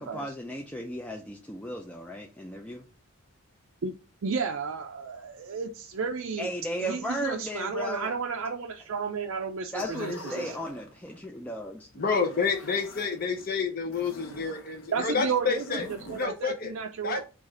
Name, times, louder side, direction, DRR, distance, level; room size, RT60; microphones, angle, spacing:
voice 1, 0.0-2.8 6.4-8.1 9.7-11.9, equal, 5° left, 0 dB, 0.4 m, -35 dB
voice 2, 4.2-6.5 6.8-10.6 14.9-17.2, right 5 dB, 65° right, 2 dB, 0.4 m, -32 dB
sound 1, 9.7-11.4 11.9-13.5 13.9-16.3, equal, 70° left, 0.9 m, -45 dB
voice 3, 12.0-15.9 16.1-16.7 17.0-17.2, left 5 dB, 40° left, 4 dB, 0.7 m, -29 dB
4.7 x 2.5 x 4.3 m, 0.32 s
head